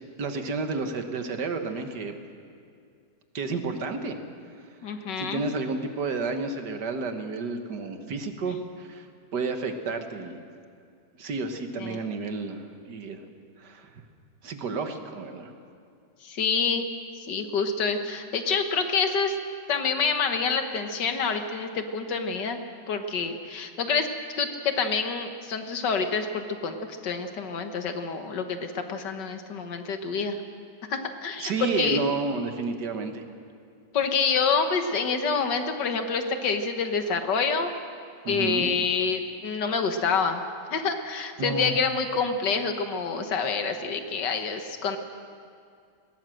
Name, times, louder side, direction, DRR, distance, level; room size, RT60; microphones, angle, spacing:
voice 1, 0.2-2.2 3.3-4.2 5.2-9.1 9.3-10.4 11.2-13.2 13.6-13.9 14.4-15.5 31.4-33.3 38.2-38.7 41.4-41.8, right 3 dB, 70° right, 6 dB, 1.9 m, -31 dB
voice 2, 4.8-5.4 11.8-12.0 16.2-16.9 17.3-19.4 19.7-22.6 22.9-24.1 24.4-26.8 27.0-30.4 30.9-32.1 33.9-37.7 38.3-40.4 40.7-45.0, left 5 dB, 75° left, 7 dB, 1.9 m, -27 dB
20.0 x 17.0 x 7.8 m, 2.4 s
omnidirectional pair, 1.9 m